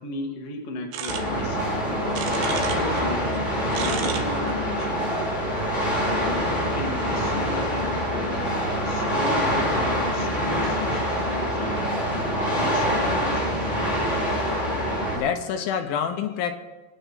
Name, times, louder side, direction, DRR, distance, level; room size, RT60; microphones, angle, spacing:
voice 1, 0.0-3.3 3.7-5.1 6.0-8.4 8.8-11.8 12.0-13.6, left 3 dB, 50° left, 1 dB, 2.2 m, -36 dB
sound 1, 0.9-3.1 3.3-5.9, right 8 dB, 80° right, 3.0 m, -34 dB
sound 2, 1.1-15.2, equal, 20° left, 5.9 m, -25 dB
voice 2, 13.9-14.7 15.1-16.6, left 7 dB, 80° left, 6 dB, 2.3 m, -29 dB
25.0 x 9.1 x 4.1 m, 1.3 s
omnidirectional pair, 4.8 m